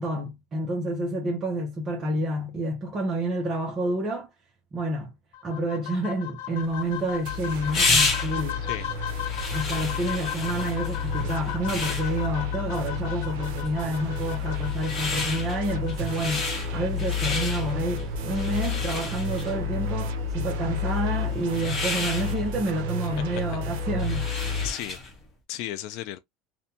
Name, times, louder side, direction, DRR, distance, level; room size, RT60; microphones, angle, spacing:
voice 1, 0.0-4.3 4.7-5.1 5.4-8.6 9.5-24.3, right 1 dB, 30° right, 0.6 m, -29 dB
sound 1, 5.3-16.3, left 12 dB, 80° left, 0.7 m, -37 dB
sound 2, 6.7-25.2, left 3 dB, 30° left, 0.9 m, -32 dB
sound 3, 7.2-24.7, left 4 dB, 75° right, 0.6 m, -31 dB
voice 2, 8.6-9.6 9.8-9.9 23.3-23.6 24.6-25.0 25.5-26.2, left 13 dB, 65° left, 0.3 m, -36 dB
2.6 x 2.1 x 2.7 m
supercardioid pair, 140°, 0 cm